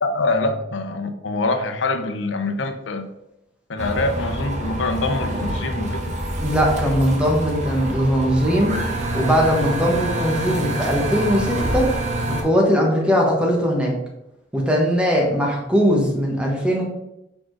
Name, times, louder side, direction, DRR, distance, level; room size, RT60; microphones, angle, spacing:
voice 1, 0.0-3.1 3.7-6.0, left 2 dB, 85° left, 7 dB, 0.7 m, -24 dB
sound 1, 3.8-12.4, right 1 dB, 40° right, 1.1 m, -26 dB
voice 2, 6.4-8.8 9.1-11.9 12.3-13.9 14.5-16.8, equal, 5° right, -1 dB, 1.3 m, -20 dB
4.8 x 4.4 x 4.7 m, 0.85 s
head